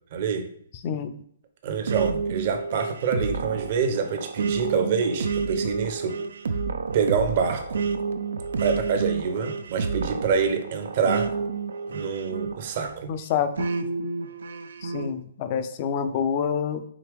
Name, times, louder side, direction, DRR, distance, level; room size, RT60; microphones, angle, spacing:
voice 1, 0.1-0.5 1.6-6.2 6.9-7.9 8.6-11.3 11.9-13.1, right 6 dB, 45° right, 7 dB, 0.7 m, -26 dB
voice 2, 0.7-1.1 13.1-13.7 14.8-16.8, left 7 dB, 40° left, 10 dB, 0.4 m, -27 dB
sound 1, 1.9-12.9 13.6-15.1, right 5 dB, 70° right, 0.4 m, -30 dB
4.8 x 2.9 x 3.4 m, 0.64 s
hypercardioid pair, 135°, 0 cm